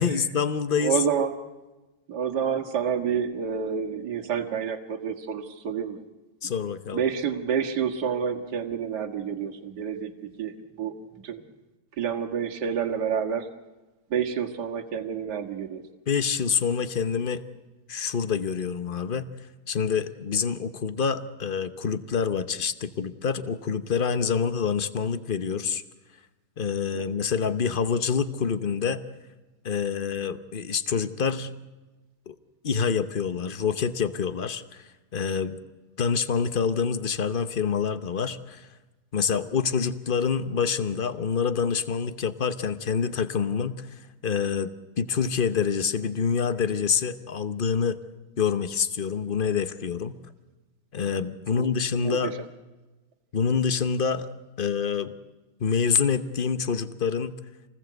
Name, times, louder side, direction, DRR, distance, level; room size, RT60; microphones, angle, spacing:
voice 1, 0.0-1.0 6.4-7.0 16.1-17.4 17.9-19.3 19.7-25.8 26.6-29.0 29.6-31.5 32.3-32.4 32.6-35.6 36.0-38.7 39.1-44.7 45.0-48.0 48.4-50.2 50.9-52.3 53.3-54.3 54.6-55.1 55.6-57.4, left 6 dB, 65° left, 12 dB, 0.5 m, -26 dB
voice 2, 0.8-1.5 2.1-6.0 6.4-6.5 6.9-10.9 11.2-11.4 12.0-13.5 14.1-15.8 26.9-27.0 51.5-52.4, right 7 dB, 50° right, 4 dB, 2.2 m, -29 dB
27.5 x 20.0 x 8.0 m, 1.2 s
omnidirectional pair, 2.3 m